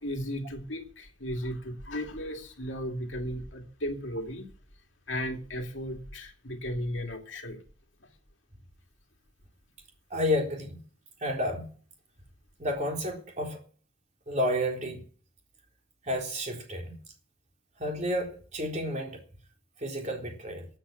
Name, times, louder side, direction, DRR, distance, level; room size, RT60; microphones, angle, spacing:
voice 1, 0.0-4.5 5.1-7.6, equal, 65° left, 2.4 m, -35 dB
voice 2, 10.1-10.8 11.2-11.7 12.6-13.6 14.3-15.0 16.0-17.0 17.8-19.2 19.8-20.7, left 1 dB, 35° right, 3.8 m, -31 dB
12.5 x 8.2 x 9.2 m
head